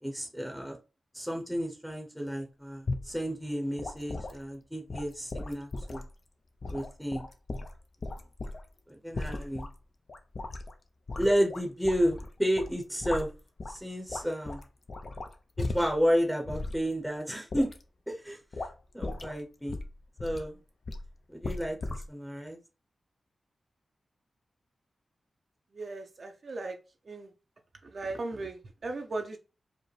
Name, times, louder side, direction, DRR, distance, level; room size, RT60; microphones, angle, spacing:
voice 1, 0.0-0.8 1.1-6.0 6.7-7.3 8.9-9.7 11.2-13.3 13.7-14.6 15.7-17.7 18.1-18.4 18.9-19.8 20.2-20.6 21.3-21.8 22.1-22.6, equal, ahead, 1 dB, 0.7 m, -31 dB
sound 1, 2.9-3.1 3.8-4.4 4.9-6.1 6.6-8.7 9.1-9.7 10.1-10.7 11.1-12.3 12.6-13.8 14.1-16.1 16.5-16.8 17.5-17.8 18.5-18.7 19.0-19.4 19.7-20.5 20.8-21.1 21.4-22.0, left 2 dB, 50° left, 0.5 m, -37 dB
voice 2, 25.7-26.8 27.1-27.3 27.8-29.4, right 3 dB, 50° right, 3 dB, 0.5 m, -37 dB
4.8 x 2.1 x 3.1 m, 0.31 s
wide cardioid pair, 110°, 0 cm